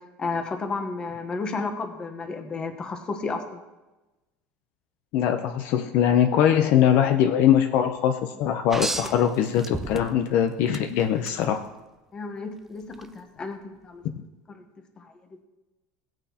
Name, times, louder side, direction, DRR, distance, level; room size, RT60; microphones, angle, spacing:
voice 1, 0.2-3.6 12.1-14.0 14.5-14.6 15.0-15.1, left 4 dB, 20° left, 6 dB, 1.0 m, -32 dB
voice 2, 5.1-11.6, left 9 dB, 50° left, 7 dB, 0.6 m, -22 dB
sound 1, 8.7-10.3 10.7-11.4 12.9-13.0, right 2 dB, 5° right, 0.4 m, -32 dB
17.5 x 8.9 x 2.9 m, 1.1 s
cardioid pair, 165°, 5 cm